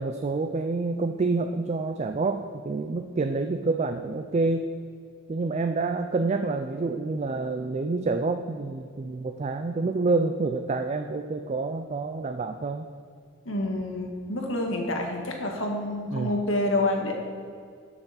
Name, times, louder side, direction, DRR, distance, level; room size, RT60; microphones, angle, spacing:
voice 1, 0.0-4.7 5.3-12.9 16.1-16.3, right 3 dB, 35° right, 6 dB, 0.3 m, -28 dB
voice 2, 13.4-17.1, left 1 dB, 70° left, 2 dB, 1.5 m, -28 dB
13.0 x 5.9 x 4.1 m, 2.2 s
head